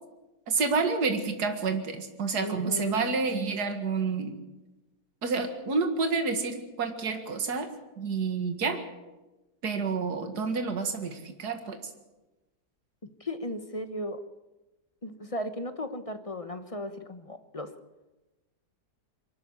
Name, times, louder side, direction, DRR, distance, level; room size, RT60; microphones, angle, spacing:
voice 1, 0.5-4.4 5.2-7.7 8.0-8.8 9.6-11.9, right 4 dB, 65° right, 6 dB, 2.4 m, -29 dB
voice 2, 2.4-3.1 13.2-14.2 15.0-17.7, left 1 dB, 25° left, 9 dB, 1.0 m, -36 dB
23.0 x 13.0 x 9.6 m, 1.1 s
omnidirectional pair, 1.8 m